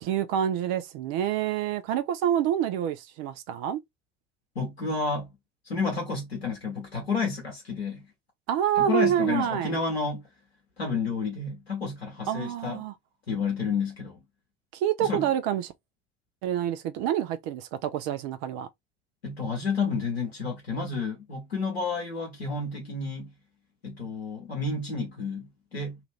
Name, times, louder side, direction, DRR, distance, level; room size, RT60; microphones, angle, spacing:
voice 1, 0.0-3.8 8.5-9.8 12.3-12.9 14.7-15.7 16.4-18.7, right 10 dB, 60° right, 0.8 m, -27 dB
voice 2, 4.5-5.3 5.6-8.0 8.8-10.3 10.8-12.8 13.3-14.2 15.0-15.3 19.2-23.3 23.8-26.0, left 4 dB, 90° left, 1.0 m, -30 dB
2.9 x 2.5 x 3.4 m
figure-of-eight pair, 60°, 30 cm